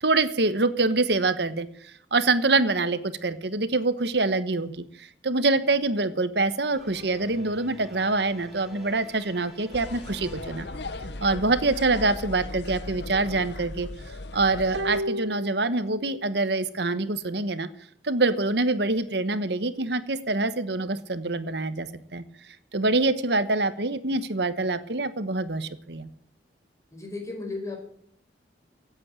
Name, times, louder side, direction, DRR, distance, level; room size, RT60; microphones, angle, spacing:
voice 1, 0.0-10.7 11.2-17.7 18.0-22.2 22.7-26.1, right 3 dB, 70° right, 13 dB, 1.2 m, -25 dB
sound 1, 6.7-12.2, equal, ahead, 4.9 m, -48 dB
sound 2, 9.7-15.0, left 2 dB, 70° left, 1.0 m, -37 dB
sound 3, 14.7-16.4 16.7-16.8, equal, 85° right, 0.9 m, -33 dB
voice 2, 26.9-27.8, left 3 dB, 15° left, 2 dB, 5.1 m, -34 dB
16.5 x 8.7 x 9.0 m, 0.64 s
head